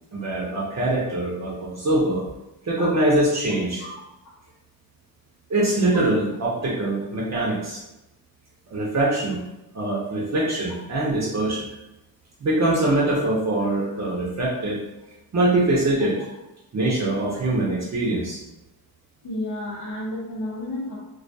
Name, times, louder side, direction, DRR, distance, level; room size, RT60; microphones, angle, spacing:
voice 1, 0.1-2.2 2.6-3.8 5.5-7.8 8.7-9.4 9.7-11.7 12.4-14.8 15.3-16.3 16.7-18.4, right 2 dB, 40° right, -4 dB, 0.5 m, -23 dB
voice 2, 19.2-21.0, left 1 dB, 80° left, -8 dB, 0.8 m, -31 dB
2.3 x 2.2 x 2.6 m, 0.95 s
wide cardioid pair, 110°, 42 cm